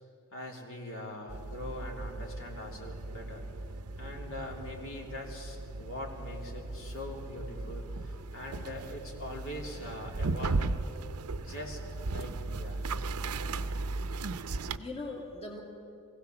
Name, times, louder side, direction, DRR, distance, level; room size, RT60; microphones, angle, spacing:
voice 1, 0.3-3.5 3.9-10.8 11.3-12.9, left 1 dB, 65° left, 0 dB, 2.9 m, -42 dB
sound 1, 1.3-14.8, right 3 dB, 75° right, 0.7 m, -37 dB
voice 2, 14.4-15.6, left 2 dB, 25° left, 0 dB, 2.3 m, -42 dB
23.0 x 16.5 x 7.0 m, 2.8 s
head